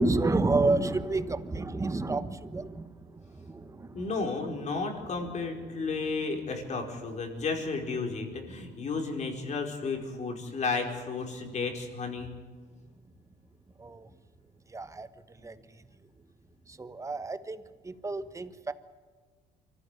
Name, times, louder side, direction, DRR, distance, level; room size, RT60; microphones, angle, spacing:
voice 1, 0.0-2.8 3.5-3.6 13.8-14.0 14.7-15.1 15.4-15.5 16.8-17.6 17.8-18.7, right 2 dB, 20° right, 12 dB, 1.2 m, -29 dB
voice 2, 3.9-12.3 15.4-15.5, left 4 dB, 45° left, 3 dB, 4.8 m, -33 dB
24.5 x 15.0 x 9.9 m, 1.5 s
cardioid pair, 110°, 17 cm